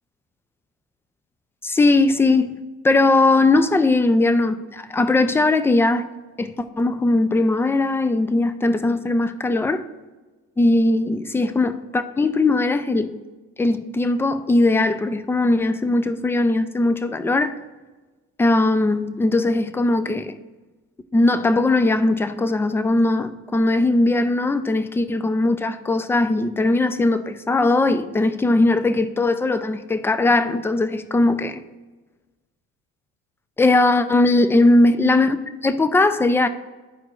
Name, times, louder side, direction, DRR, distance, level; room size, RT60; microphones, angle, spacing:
voice 1, 1.6-2.6 2.8-6.1 6.4-9.8 10.6-13.1 13.6-17.6 18.4-20.3 21.1-31.6 33.6-35.4 35.6-36.5, left 2 dB, 5° left, 0.4 m, -19 dB
12.0 x 4.6 x 2.4 m
supercardioid pair, 95°, 32 cm